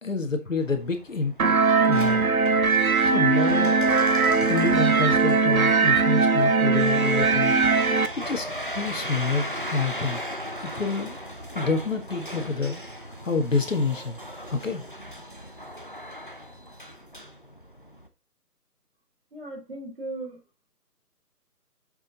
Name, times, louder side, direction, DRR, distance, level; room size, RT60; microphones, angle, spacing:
voice 1, 0.0-1.6 1.8-2.2 3.0-3.7 4.4-7.5 8.2-9.4 9.7-10.2 10.6-11.1 11.5-12.8 13.2-14.2 14.5-14.8, left 4 dB, 50° left, 1.8 m, -27 dB
sound 1, 0.6-18.1, equal, 35° left, 0.7 m, -38 dB
sound 2, 1.4-8.1, right 4 dB, 60° right, 1.0 m, -20 dB
voice 2, 19.3-20.4, right 2 dB, 40° right, 3.7 m, -37 dB
7.1 x 6.7 x 4.0 m
figure-of-eight pair, 175°, 48 cm